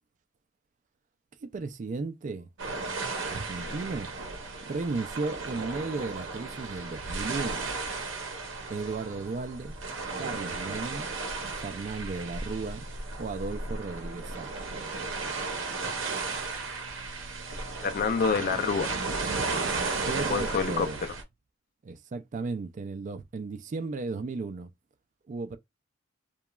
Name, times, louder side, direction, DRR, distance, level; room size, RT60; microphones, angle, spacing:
voice 1, 1.4-2.5 3.3-4.1 4.6-7.6 8.7-9.7 10.2-11.1 11.6-12.8 13.2-14.5 20.0-21.0 21.8-24.7 25.3-25.6, right 3 dB, 40° right, 0.3 m, -35 dB
sound 1, 2.6-21.2, right 3 dB, 75° right, 0.7 m, -34 dB
voice 2, 17.8-18.9 20.2-20.9, left 5 dB, 50° left, 0.4 m, -27 dB
2.9 x 2.2 x 2.2 m
head